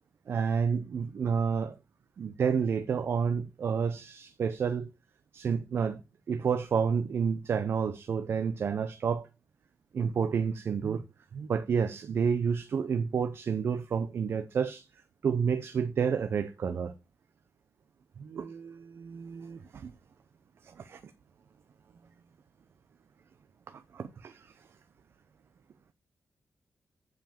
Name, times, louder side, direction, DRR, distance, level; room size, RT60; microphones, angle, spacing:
voice 1, 0.3-1.8 2.2-4.9 5.3-6.0 6.3-9.3 9.9-11.0 11.3-14.9 15.2-16.9 18.2-19.9 20.6-21.0 23.7-24.5, right 6 dB, 55° right, 0.7 m, -30 dB
7.5 x 5.7 x 7.0 m
wide cardioid pair, 150°, 5 cm